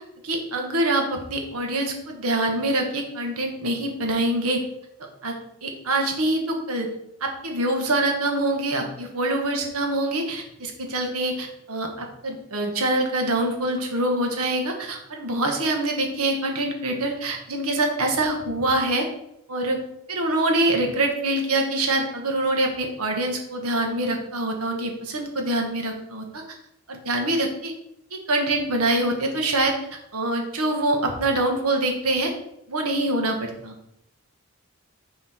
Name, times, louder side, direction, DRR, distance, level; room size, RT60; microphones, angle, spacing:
voice 1, 0.2-4.6 5.2-6.9 7.2-19.1 19.5-19.8 20.1-26.4 26.9-27.7 28.1-29.7 30.1-32.3 32.7-33.7, right 2 dB, 90° right, 2 dB, 1.5 m, -25 dB
6.0 x 5.5 x 4.4 m, 0.79 s
head